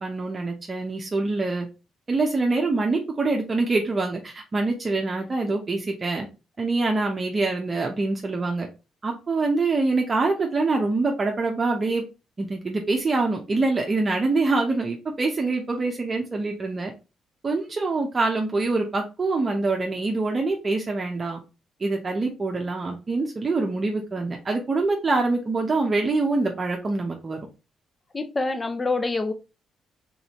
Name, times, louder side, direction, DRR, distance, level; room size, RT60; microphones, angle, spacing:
voice 1, 0.0-1.7 2.1-6.3 6.6-8.7 9.0-12.0 12.4-16.9 17.4-21.4 21.8-27.4, right 3 dB, 30° right, 0.8 m, -25 dB
voice 2, 28.1-29.3, left 3 dB, 25° left, 0.5 m, -26 dB
3.9 x 3.8 x 3.0 m
cardioid pair, 90°, 0 cm